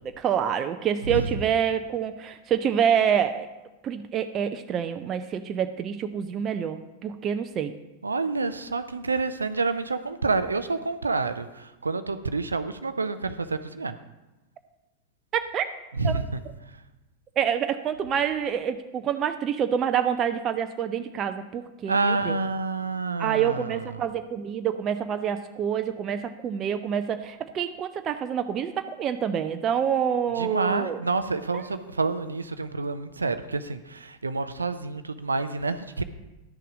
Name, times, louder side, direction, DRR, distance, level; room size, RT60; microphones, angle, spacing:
voice 1, 0.0-3.5 3.8-7.7 15.3-15.7 16.0-16.2 17.4-22.4 23.2-31.0 31.5-31.6, right 8 dB, 30° right, 8 dB, 0.5 m, -27 dB
voice 2, 8.0-13.9 16.0-16.4 21.9-23.9 30.4-36.0, right 3 dB, 75° right, 11 dB, 0.5 m, -28 dB
11.5 x 6.7 x 5.0 m, 1.0 s
figure-of-eight pair, 90°, 0 cm